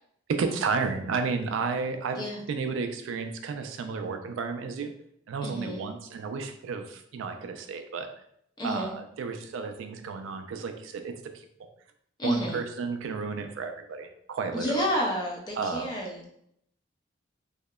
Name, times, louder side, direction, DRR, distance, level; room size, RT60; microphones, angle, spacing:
voice 1, 0.3-4.9 5.3-8.1 8.6-11.5 12.2-14.8 15.6-15.9, right 4 dB, 85° right, 7 dB, 0.3 m, -32 dB
voice 2, 5.4-5.9 8.6-8.9 12.2-12.6 14.5-16.2, equal, 20° left, -2 dB, 0.4 m, -30 dB
2.8 x 2.0 x 2.2 m, 0.70 s
head